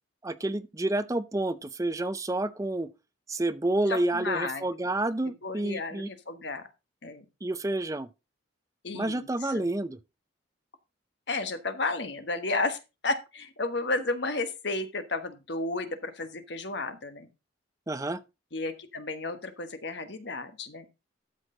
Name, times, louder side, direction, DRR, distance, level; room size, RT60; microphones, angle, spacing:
voice 1, 0.2-2.9 3.3-6.1 7.4-8.1 8.9-10.0 17.9-18.2, right 2 dB, 15° right, 0.5 m, -29 dB
voice 2, 3.9-4.6 5.4-6.6 7.0-7.2 8.8-9.6 11.3-17.3 18.5-20.8, left 3 dB, 60° left, 1.3 m, -33 dB
12.5 x 6.4 x 3.8 m
head